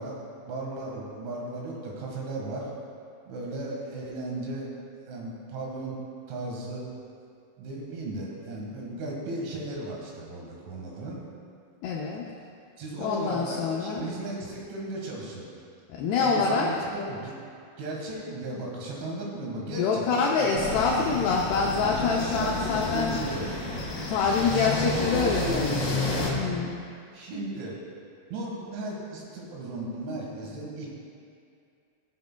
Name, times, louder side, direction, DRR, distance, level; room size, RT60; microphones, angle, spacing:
voice 1, 0.0-2.7 3.3-4.7 5.1-6.0 6.3-6.9 7.6-11.2 12.8-15.5 16.2-17.3 17.8-21.0 21.9-23.5 24.5-26.1 27.1-27.8 28.3-30.9, right 2 dB, 85° right, -3 dB, 4.1 m, -36 dB
voice 2, 11.8-12.3 13.0-14.1 16.0-16.7 19.7-23.2 24.1-25.8 26.2-26.7, left 5 dB, 80° left, -3 dB, 2.5 m, -26 dB
sound 1, 20.6-26.3, left 2 dB, 55° left, 1.3 m, -31 dB
17.0 x 8.3 x 2.2 m, 2.4 s
omnidirectional pair, 5.3 m